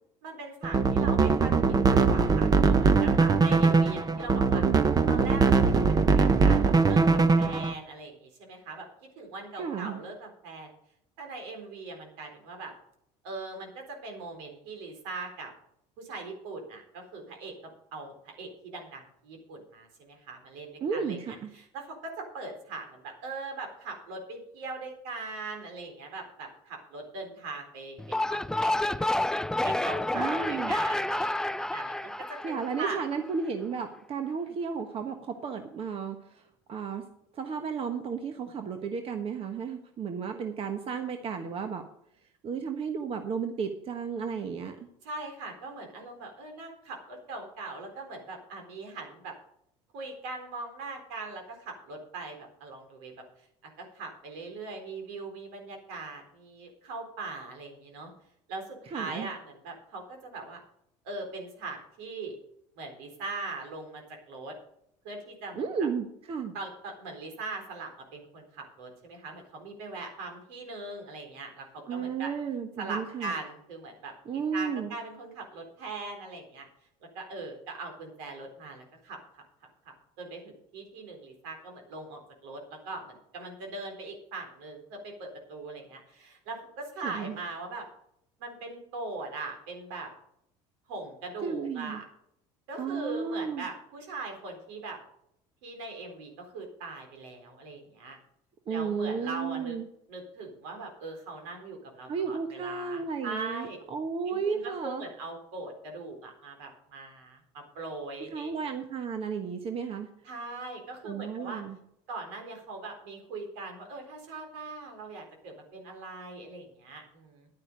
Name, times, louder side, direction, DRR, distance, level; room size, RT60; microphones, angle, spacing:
voice 1, 0.2-1.5 1.9-4.6 5.1-8.9 9.2-10.7 11.2-12.7 13.2-15.5 16.0-17.5 17.9-21.2 21.5-28.9 29.6-33.0 45.0-49.3 49.9-53.1 53.8-58.1 58.5-60.6 61.0-62.4 62.8-64.6 65.0-65.6 66.5-72.3 72.8-76.7 77.1-79.4 79.9-87.9 88.4-90.1 90.9-92.0 92.7-95.0 95.6-98.2 98.7-99.8 100.1-103.8 104.3-108.5 110.3-111.6 112.1-117.5, right 3 dB, 80° right, 3 dB, 4.0 m, -40 dB
sound 1, 0.6-7.7, right 4 dB, 25° right, 1.0 m, -22 dB
voice 2, 9.6-10.0 20.8-21.5 30.1-30.7 32.4-37.1 37.3-41.9 42.4-44.9 58.9-59.3 65.5-66.5 71.8-73.3 74.2-74.9 87.0-87.4 91.4-92.0 92.8-93.7 98.7-99.9 102.1-105.1 108.3-110.1 111.0-111.8, right 6 dB, 45° right, 6 dB, 1.3 m, -33 dB
sound 2, 28.0-33.3, left 1 dB, 5° left, 0.4 m, -29 dB
11.0 x 9.8 x 5.2 m, 0.74 s
supercardioid pair, 85°, 14 cm